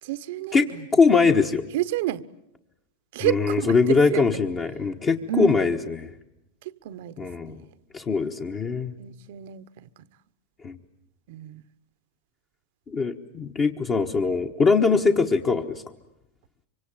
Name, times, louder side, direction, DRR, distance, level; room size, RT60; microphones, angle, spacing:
voice 1, 0.0-0.9 1.7-2.3 3.1-4.4 5.3-5.8 6.6-7.6 9.0-9.9 11.3-11.6, right 14 dB, 65° right, 1.0 m, -30 dB
voice 2, 0.9-1.6 3.2-6.1 7.2-7.5 7.9-9.0 10.6-10.8 12.9-15.8, left 4 dB, 25° left, 1.3 m, -22 dB
25.0 x 24.5 x 8.9 m
supercardioid pair, 140°, 0 cm